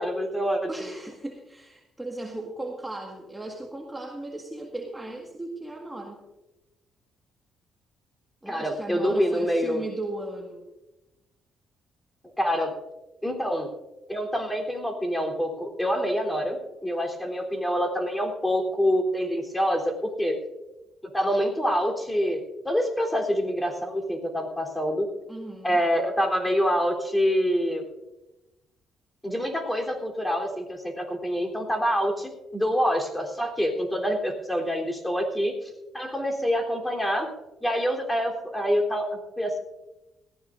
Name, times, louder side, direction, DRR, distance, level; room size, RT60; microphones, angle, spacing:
voice 1, 0.0-0.9 8.5-9.8 12.4-12.7 13.2-13.7 14.1-20.4 21.1-25.1 25.6-27.9 29.2-37.3 37.6-39.1 39.4-39.6, equal, 10° left, 1 dB, 3.6 m, -26 dB
voice 2, 0.7-6.2 8.4-10.7 25.3-25.8, right 2 dB, 10° right, 0 dB, 1.8 m, -36 dB
20.0 x 15.0 x 2.6 m, 0.99 s
cardioid pair, 90°, 0 cm